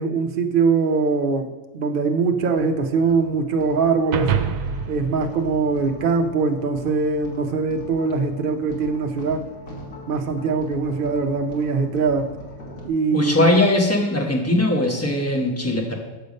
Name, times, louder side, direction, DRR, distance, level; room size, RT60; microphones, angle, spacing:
voice 1, 0.0-1.5 1.7-4.3 4.9-9.4 10.1-12.3 12.8-13.5, right 4 dB, 50° right, 5 dB, 0.7 m, -22 dB
sound 1, 2.4-12.9, equal, 75° left, 2.0 m, -41 dB
sound 2, 4.1-6.6, right 7 dB, 75° right, 1.0 m, -27 dB
voice 2, 13.1-15.9, left 1 dB, 10° left, 0 dB, 1.0 m, -20 dB
6.9 x 6.7 x 5.3 m, 1.1 s
omnidirectional pair, 1.5 m